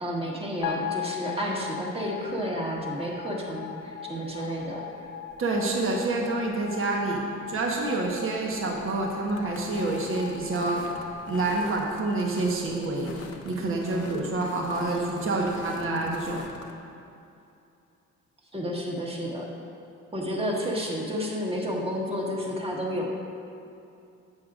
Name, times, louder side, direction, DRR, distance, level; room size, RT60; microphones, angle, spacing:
voice 1, 0.0-4.9 14.9-15.5 18.5-19.5 20.1-23.1, equal, 20° right, -3 dB, 1.6 m, -31 dB
sound 1, 0.6-12.9, left 9 dB, 85° left, 0.9 m, -39 dB
sound 2, 5.3-16.7, left 4 dB, 55° left, 0.9 m, -44 dB
voice 2, 5.4-7.2 7.5-11.0 11.3-16.4, right 2 dB, 45° right, -1 dB, 1.2 m, -28 dB
11.0 x 8.2 x 2.5 m, 2.7 s
cardioid pair, 90°, 30 cm